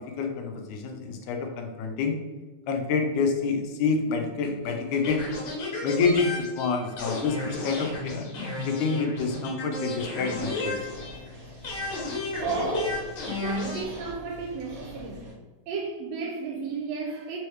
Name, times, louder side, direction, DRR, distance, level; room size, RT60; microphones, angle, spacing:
voice 1, 0.2-2.2 2.7-5.2 5.8-8.3 8.7-10.8, left 4 dB, 90° left, 3 dB, 2.1 m, -27 dB
sound 1, 5.0-11.3 11.6-13.8, left 2 dB, 65° left, 2.4 m, -33 dB
Dog, 10.3-15.3, right 1 dB, 50° right, 1.7 m, -35 dB
voice 2, 13.3-15.3 15.7-17.4, right 5 dB, 80° right, 0 dB, 1.5 m, -34 dB
5.4 x 3.1 x 3.2 m, 1.3 s
omnidirectional pair, 3.4 m